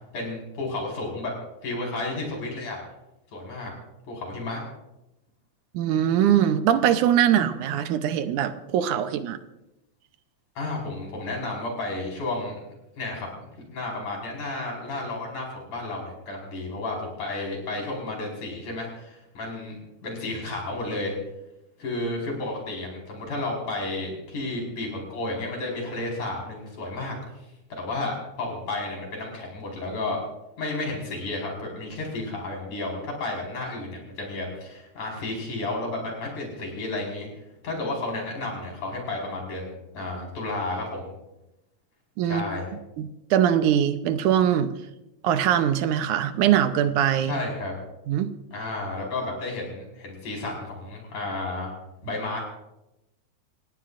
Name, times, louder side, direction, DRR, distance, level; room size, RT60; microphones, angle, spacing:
voice 1, 0.1-1.3 1.6-2.8 3.3-3.7 4.1-4.6 10.6-12.5 13.0-21.1 21.8-27.2 27.8-30.2 30.6-37.3 37.6-41.1 42.2-42.7 47.2-47.7 48.5-51.7 52.0-52.4, left 2 dB, 70° left, -1 dB, 6.3 m, -32 dB
voice 2, 5.7-9.4 42.2-42.5 43.0-44.7 45.2-47.3 48.1-48.3, right 10 dB, 80° right, 10 dB, 2.3 m, -22 dB
28.0 x 17.0 x 2.5 m, 0.91 s
omnidirectional pair, 3.5 m